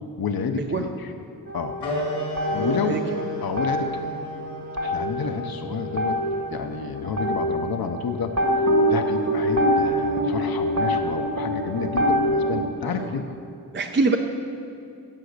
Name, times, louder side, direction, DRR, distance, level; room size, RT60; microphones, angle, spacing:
voice 1, 0.2-0.9 1.5-1.8 2.5-3.0 3.4-4.1 4.8-6.2 6.5-8.4 8.9-13.2, left 6 dB, 60° left, 6 dB, 0.8 m, -29 dB
sound 1, 1.5-3.2 3.5-12.6, equal, 50° right, 1.7 m, -25 dB
sound 2, 1.8-6.9, equal, 85° left, 3.0 m, -33 dB
voice 2, 2.5-3.0 12.8-13.1 13.7-14.2, right 3 dB, 30° right, 4 dB, 0.5 m, -25 dB
16.5 x 7.0 x 6.6 m, 2.7 s
wide cardioid pair, 160°, 41 cm